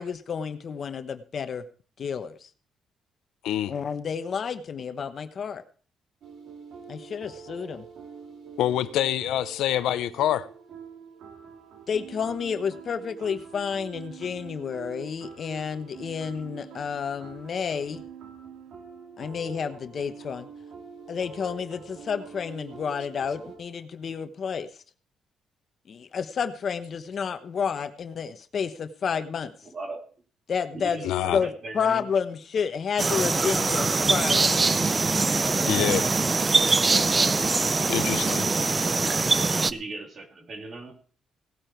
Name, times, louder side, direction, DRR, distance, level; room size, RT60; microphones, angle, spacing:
voice 1, 0.0-1.6 2.0-2.5 3.7-5.6 6.9-7.8 11.9-18.0 19.2-20.5 21.1-24.7 25.9-29.5 30.5-31.0 31.3-34.5, left 6 dB, 50° left, 1.1 m, -30 dB
sound 1, 6.2-23.6, right 6 dB, 70° right, 3.3 m, -45 dB
voice 2, 8.6-10.5 31.0-31.4 35.7-36.0 37.9-38.5, left 12 dB, 85° left, 0.7 m, -26 dB
voice 3, 29.7-30.0 30.7-32.1 39.7-40.9, right 3 dB, 45° right, 2.9 m, -38 dB
sound 2, 33.0-39.7, right 3 dB, 30° right, 0.5 m, -23 dB
17.5 x 8.8 x 4.6 m
cardioid pair, 90°, 0 cm